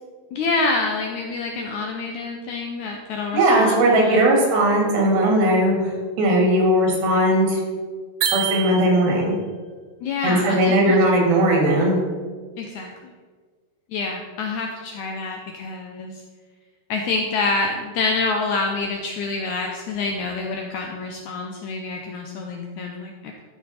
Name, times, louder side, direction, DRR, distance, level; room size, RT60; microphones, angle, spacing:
voice 1, 0.3-4.3 10.0-11.0 12.6-13.1 13.9-16.2 16.9-23.4, left 3 dB, 85° left, 2 dB, 1.7 m, -27 dB
voice 2, 3.3-5.7 6.2-7.6 8.3-9.4 10.2-12.0, right 1 dB, 90° right, -1 dB, 3.9 m, -18 dB
sound 1, 8.2-9.3, right 9 dB, 70° right, 2.4 m, -26 dB
12.5 x 6.0 x 4.1 m, 1.5 s
omnidirectional pair, 4.2 m